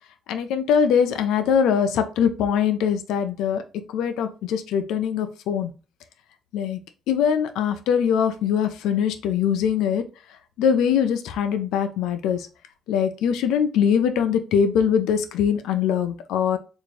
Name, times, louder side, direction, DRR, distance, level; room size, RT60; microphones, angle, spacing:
voice 1, 0.3-3.6 3.9-5.7 6.5-6.8 7.1-10.1 10.6-12.5 12.9-16.6, left 7 dB, 90° left, 7 dB, 0.4 m, -22 dB
3.4 x 2.5 x 3.1 m, 0.34 s
cardioid pair, 90°, 0 cm